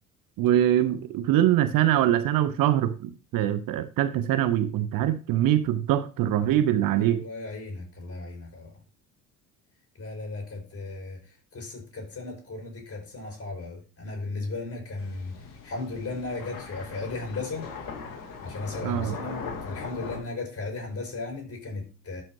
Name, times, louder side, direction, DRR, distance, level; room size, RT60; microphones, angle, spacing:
voice 1, 0.4-7.2 18.8-19.1, right 12 dB, 50° right, 0.7 m, -23 dB
voice 2, 7.0-8.7 10.0-11.2 11.5-17.7 18.4-22.2, left 3 dB, 35° left, 5.2 m, -36 dB
sound 1, 15.0-20.2, left 5 dB, 50° left, 2.4 m, -40 dB
12.0 x 5.6 x 2.9 m
hypercardioid pair, 55°, 42 cm